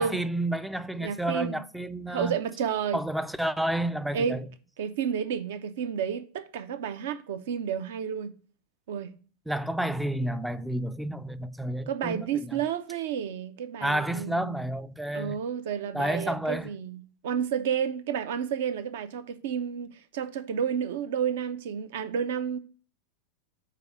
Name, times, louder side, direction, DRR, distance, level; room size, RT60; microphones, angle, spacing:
voice 1, 0.0-2.4 2.9-4.4 9.5-12.6 13.8-15.4 15.9-16.7, right 1 dB, ahead, 0.4 m, -30 dB
voice 2, 1.0-1.6 2.1-3.0 4.1-4.4 4.8-8.3 8.9-9.1 11.9-14.5 15.1-22.6, right 7 dB, 55° right, 0.7 m, -31 dB
8.4 x 3.4 x 5.9 m
figure-of-eight pair, 90°, 0 cm